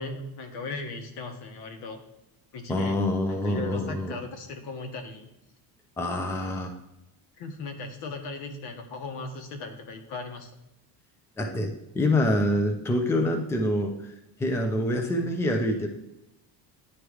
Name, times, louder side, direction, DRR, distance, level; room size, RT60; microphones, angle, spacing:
voice 1, 0.0-2.0 2.5-3.0 3.3-5.3 7.4-10.5, left 3 dB, 70° left, 6 dB, 1.2 m, -37 dB
voice 2, 2.7-4.1 6.0-6.7 11.4-13.9 14.4-15.9, left 1 dB, 5° left, 4 dB, 0.5 m, -26 dB
9.8 x 3.3 x 4.7 m, 0.89 s
cardioid pair, 145°, 41 cm